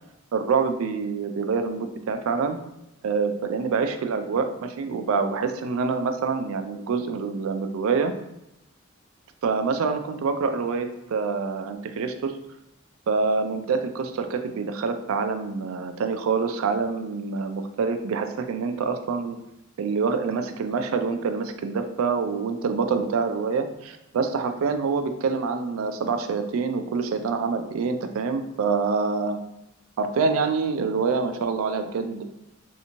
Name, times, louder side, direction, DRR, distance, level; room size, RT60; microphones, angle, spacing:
voice 1, 0.3-2.6 3.0-8.1 9.4-12.3 13.1-19.4 19.8-29.4 30.0-32.2, right 5 dB, 80° right, 8 dB, 0.3 m, -26 dB
3.3 x 2.7 x 2.9 m, 0.87 s
head